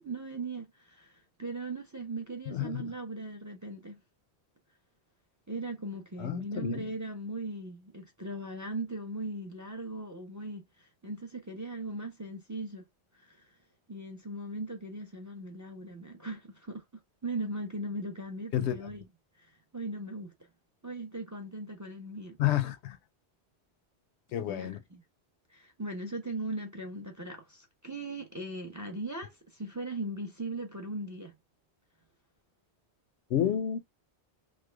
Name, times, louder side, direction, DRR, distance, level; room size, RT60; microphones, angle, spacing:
voice 1, 0.0-4.0 5.5-12.9 13.1-13.5 13.9-16.8 17.2-19.1 19.4-20.3 20.8-22.4 24.4-25.0 25.5-31.3, right 2 dB, 20° right, 0.5 m, -39 dB
voice 2, 2.5-2.9 6.2-6.9 18.5-18.8 22.4-23.0 24.3-24.8 33.3-33.8, left 11 dB, 85° left, 0.9 m, -30 dB
3.2 x 2.0 x 3.2 m
omnidirectional pair, 1.1 m